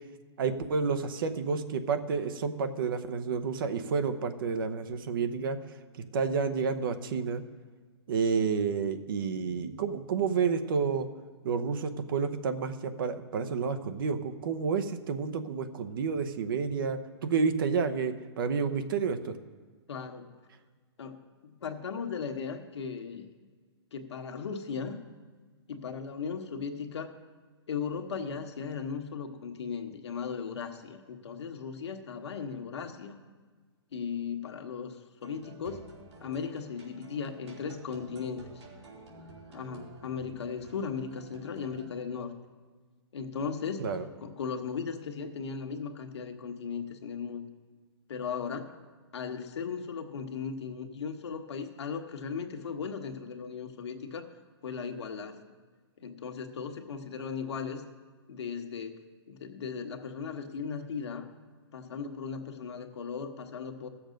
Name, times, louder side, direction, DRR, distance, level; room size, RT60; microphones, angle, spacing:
voice 1, 0.4-5.6 6.1-7.4 8.1-11.1 11.4-19.4 43.8-44.0, right 5 dB, 50° right, 8 dB, 0.9 m, -30 dB
voice 2, 19.9-20.3 21.0-23.3 23.9-25.0 25.7-27.1 27.7-33.2 33.9-35.9 36.2-38.4 39.5-42.3 43.1-43.9 44.2-47.5 48.1-48.7 49.1-54.3 54.6-55.4 56.0-57.8 58.3-59.0 59.3-61.3 61.7-63.9, left 6 dB, 75° left, 5 dB, 1.4 m, -37 dB
sound 1, 35.2-41.9, right 3 dB, 75° right, 3.3 m, -51 dB
15.5 x 7.2 x 5.2 m, 1.5 s
hypercardioid pair, 160°, 15 cm